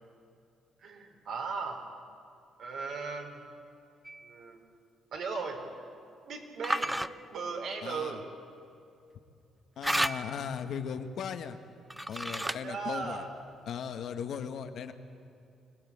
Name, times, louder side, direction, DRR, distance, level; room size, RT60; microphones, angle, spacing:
voice 1, 0.8-1.8 2.6-3.4 4.2-4.6 5.1-5.6 6.2-7.0 7.3-8.2 12.4-13.3, right 4 dB, 70° right, 2 dB, 4.2 m, -37 dB
sound 1, 4.0-4.3 6.6-7.1 9.8-10.5 11.9-12.7, right 1 dB, 5° right, 0.6 m, -32 dB
voice 2, 7.8-8.2 9.8-11.6 12.1-13.3 13.7-14.9, left 7 dB, 70° left, 7 dB, 1.5 m, -37 dB
24.5 x 17.5 x 8.6 m, 2.5 s
cardioid pair, 90°, 0 cm